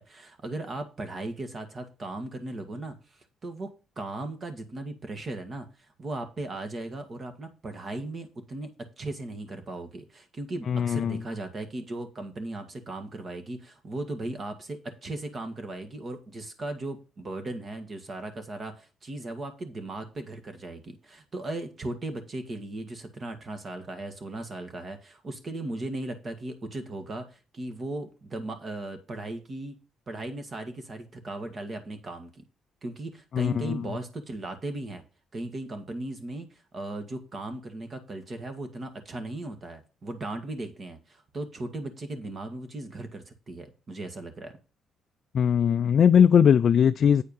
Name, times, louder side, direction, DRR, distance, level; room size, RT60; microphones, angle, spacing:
voice 1, 0.0-3.7 4.0-5.7 6.0-29.8 30.1-32.4 32.8-35.0 35.3-36.5 36.7-44.5, right 2 dB, 40° right, 1.7 m, -37 dB
voice 2, 10.7-11.2 33.3-33.7 45.3-47.2, left 8 dB, 55° left, 0.3 m, -20 dB
8.6 x 4.5 x 5.6 m
cardioid pair, 90°, 0 cm